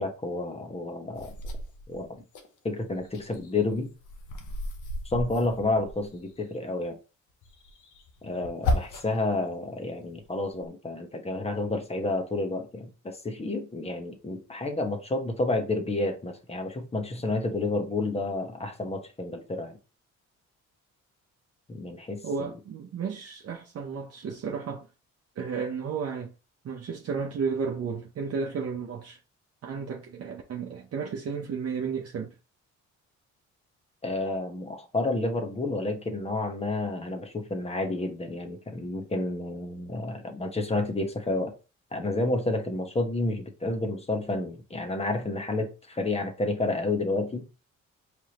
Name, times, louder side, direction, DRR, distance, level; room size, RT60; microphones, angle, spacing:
voice 1, 0.0-1.3 1.9-2.2 2.6-3.9 5.0-7.0 8.2-19.8 21.7-22.5 34.0-41.5 41.9-47.5, left 2 dB, 20° left, 1.1 m, -30 dB
sound 1, 1.2-2.5 2.9-6.4 7.4-9.3 9.7-10.7, left 2 dB, 80° left, 0.9 m, -34 dB
voice 2, 22.2-24.9 25.4-26.3 26.6-29.2 29.6-32.3, right 5 dB, 55° right, 0.8 m, -33 dB
4.7 x 3.4 x 2.9 m
cardioid pair, 90°, 30 cm